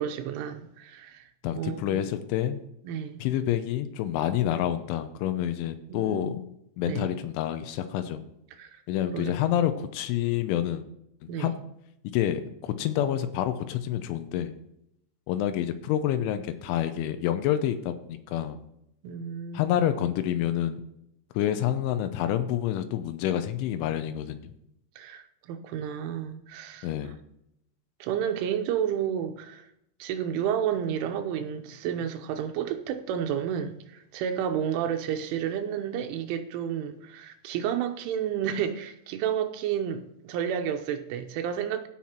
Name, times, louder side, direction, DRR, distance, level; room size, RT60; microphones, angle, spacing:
voice 1, 0.0-1.3 1.6-2.0 2.8-3.2 5.9-6.5 6.8-7.1 8.6-8.7 9.1-9.7 11.3-11.5 19.0-19.7 25.0-26.9 28.0-29.7 30.0-41.9, right 9 dB, 90° right, 3.4 m, -31 dB
voice 2, 1.4-2.6 3.2-6.4 6.8-8.3 8.9-10.8 11.4-11.5 12.1-14.6 15.3-18.6 19.5-20.8 21.3-24.5 26.8-27.2, left 11 dB, 85° left, 3.2 m, -28 dB
15.5 x 5.8 x 4.4 m
omnidirectional pair, 5.4 m